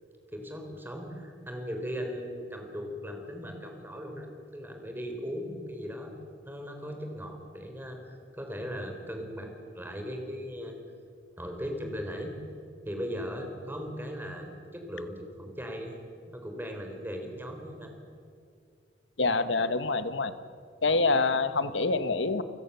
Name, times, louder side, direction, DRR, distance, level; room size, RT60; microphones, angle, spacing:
voice 1, 0.3-6.1 6.4-10.7 11.4-12.3 12.9-14.5 14.7-16.0 16.3-17.9, equal, 10° right, 3 dB, 3.9 m, -38 dB
voice 2, 19.2-20.3 20.8-22.4, left 3 dB, 75° left, 12 dB, 1.3 m, -26 dB
29.5 x 16.5 x 6.9 m, 2.3 s
head